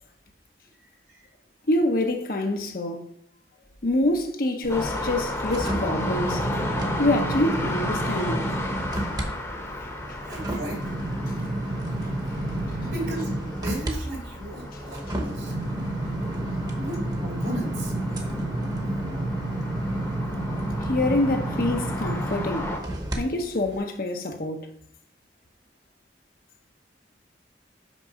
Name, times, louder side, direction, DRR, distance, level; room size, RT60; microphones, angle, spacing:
voice 1, 1.7-3.1 3.8-6.5 7.0-8.4 20.9-22.7 23.1-24.7, left 1 dB, 50° left, 0.8 m, -26 dB
sound 1, 4.6-9.3 9.7-23.2 23.6-23.8, right 1 dB, 20° right, 1.0 m, -30 dB
sound 2, 4.7-22.8, left 1 dB, 15° left, 0.9 m, -34 dB
voice 2, 10.2-11.0 12.8-13.3 13.6-15.5 16.7-17.9, right 1 dB, 75° right, 2.5 m, -35 dB
6.1 x 5.2 x 5.1 m
head